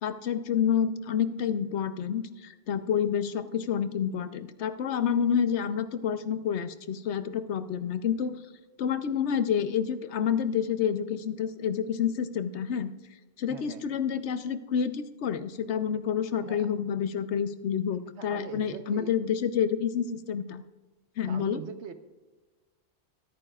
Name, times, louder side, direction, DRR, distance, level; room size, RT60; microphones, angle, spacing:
voice 1, 0.0-8.4 8.8-12.9 13.4-20.6 21.2-21.6, left 8 dB, 90° left, 11 dB, 1.0 m, -28 dB
voice 2, 13.5-13.8 16.4-16.7 18.2-19.1 21.3-21.9, right 6 dB, 80° right, 9 dB, 1.2 m, -41 dB
24.5 x 9.0 x 2.4 m, 1.2 s
omnidirectional pair, 1.1 m